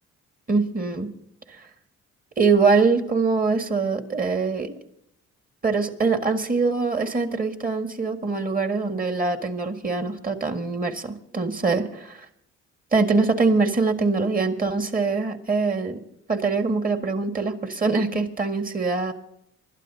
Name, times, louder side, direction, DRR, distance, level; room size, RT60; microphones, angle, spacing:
voice 1, 0.5-1.1 2.4-4.8 5.6-12.3 12.9-16.0 16.3-19.1, right 4 dB, 30° right, 6 dB, 1.8 m, -23 dB
26.5 x 12.5 x 2.8 m, 0.76 s
cardioid pair, 90°, 30 cm